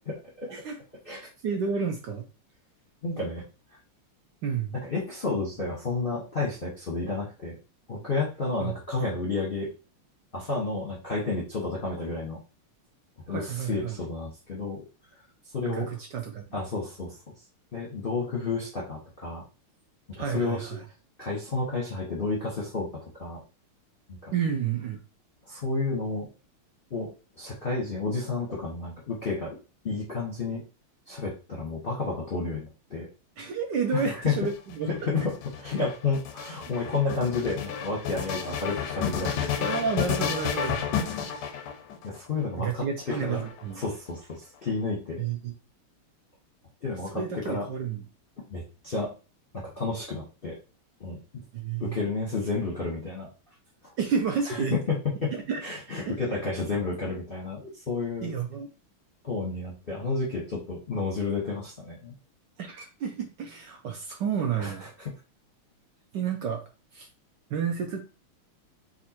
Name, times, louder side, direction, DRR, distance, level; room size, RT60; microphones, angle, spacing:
voice 1, 1.4-2.2 4.4-4.7 8.6-8.7 13.3-14.0 15.6-16.4 20.2-20.8 24.3-25.0 33.4-34.9 39.6-40.8 42.6-43.8 45.2-45.5 47.1-48.0 51.5-52.0 54.0-54.8 55.3-55.6 56.1-56.4 58.2-58.7 62.6-64.8 66.1-66.6 66.9-67.1 67.5-68.1, right 6 dB, 65° right, 3 dB, 1.1 m, -30 dB
voice 2, 3.0-3.4 4.7-7.6 7.9-9.7 10.3-12.4 13.3-14.8 15.5-15.9 16.5-17.1 17.7-19.4 20.2-20.7 21.2-23.4 24.1-24.3 25.5-26.3 26.9-27.1 27.4-29.6 29.8-30.6 31.1-33.1 33.9-34.4 34.9-39.5 42.0-43.5 43.7-45.3 46.8-47.7 48.5-49.1 49.5-50.6 51.0-51.4 51.8-53.3 53.8-53.9 54.4-55.3 55.6-58.3 59.2-62.1 64.6-65.1, left 3 dB, 40° left, -4 dB, 0.9 m, -31 dB
sound 1, 34.2-42.2 43.0-43.9, left 8 dB, 70° left, 1.0 m, -31 dB
4.3 x 2.5 x 4.2 m, 0.33 s
omnidirectional pair, 2.4 m